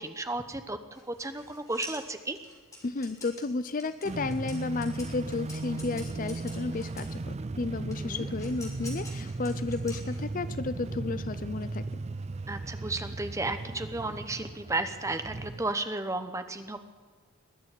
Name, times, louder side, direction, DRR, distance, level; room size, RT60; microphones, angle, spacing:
voice 1, 0.0-2.4 8.0-8.3 12.5-16.8, right 2 dB, 15° right, 9 dB, 0.8 m, -33 dB
sound 1, 0.9-7.2 7.9-10.5, left 2 dB, 15° left, 3.0 m, -48 dB
voice 2, 2.8-11.8, left 3 dB, 35° left, 13 dB, 0.5 m, -33 dB
sound 2, 4.0-15.7, right 3 dB, 30° right, 0.4 m, -37 dB
20.5 x 7.0 x 9.7 m, 1.5 s
head